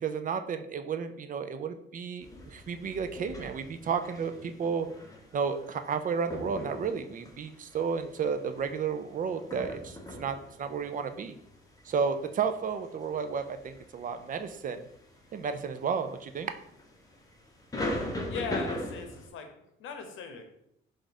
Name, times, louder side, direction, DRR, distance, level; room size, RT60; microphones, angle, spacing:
voice 1, 0.0-4.9 5.3-11.4 11.9-14.8 15.3-16.5, right 6 dB, 45° right, 9 dB, 0.4 m, -32 dB
sound 1, 2.2-19.3, left 1 dB, 15° left, 0.9 m, -41 dB
voice 2, 18.3-19.5 19.8-20.4, left 5 dB, 85° left, 6 dB, 0.8 m, -38 dB
4.4 x 2.5 x 4.1 m, 0.75 s
cardioid pair, 90°, 20 cm